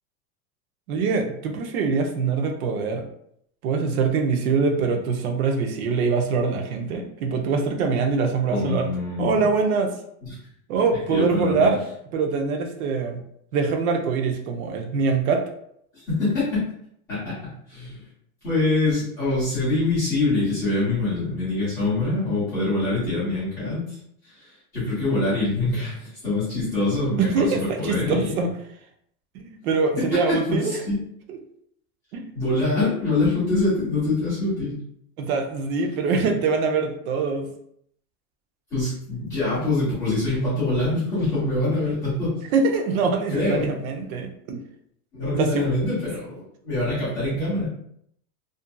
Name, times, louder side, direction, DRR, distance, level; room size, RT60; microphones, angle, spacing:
voice 1, 0.9-3.0 3.6-8.9 9.2-9.9 10.7-11.8 12.1-13.2 13.5-15.4 27.2-28.5 29.3-30.8 31.3-31.4 32.1-32.3 35.2-37.5 42.5-44.6 45.4-45.7, right 4 dB, 90° right, 4 dB, 0.7 m, -23 dB
voice 2, 8.5-9.4 10.2-10.4 11.1-11.7 15.9-16.7 17.1-18.0 18.4-24.0 24.2-28.3 30.0-31.0 32.3-34.8 38.7-42.4 43.3-43.7 45.1-47.7, left 2 dB, 10° left, -14 dB, 0.4 m, -25 dB
2.6 x 2.4 x 2.2 m, 0.70 s
supercardioid pair, 175°, 42 cm